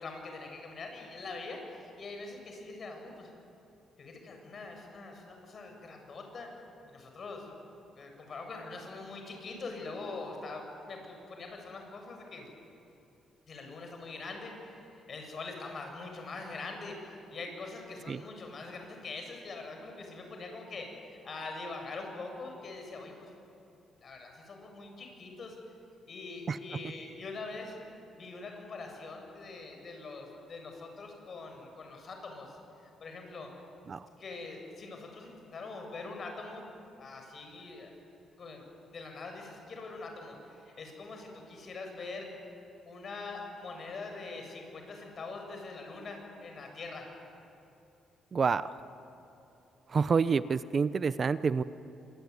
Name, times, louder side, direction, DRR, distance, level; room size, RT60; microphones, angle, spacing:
voice 1, 0.0-3.3 4.0-6.5 6.9-7.5 8.0-12.5 13.5-23.3 24.0-25.6 26.1-27.8 28.2-33.5 34.2-36.6 37.0-37.9 38.4-42.3 42.8-47.1, left 3 dB, 45° left, 3 dB, 7.2 m, -43 dB
voice 2, 48.3-48.7 49.9-51.6, right 5 dB, 40° right, 14 dB, 0.8 m, -28 dB
26.0 x 23.0 x 9.7 m, 2.8 s
cardioid pair, 90°, 0 cm